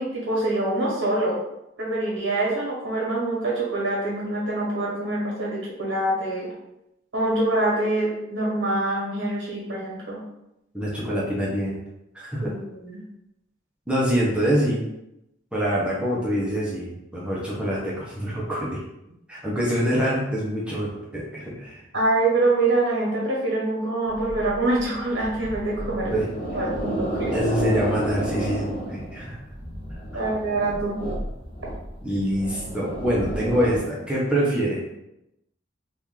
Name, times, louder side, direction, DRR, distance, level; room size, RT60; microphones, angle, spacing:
voice 1, 0.0-1.4 1.8-6.5 7.1-10.2 12.4-13.0 21.9-26.1 26.5-27.3 30.1-31.0, right 2 dB, 85° right, -4 dB, 1.4 m, -25 dB
voice 2, 10.7-11.7 12.1-12.4 13.9-14.8 15.5-18.8 19.3-21.8 26.1-26.3 27.3-29.4 30.1-30.2 32.0-34.9, equal, 5° right, -6 dB, 0.7 m, -25 dB
sound 1, 24.1-33.8, right 1 dB, 50° left, 0.7 m, -31 dB
3.0 x 2.5 x 3.7 m, 0.87 s
head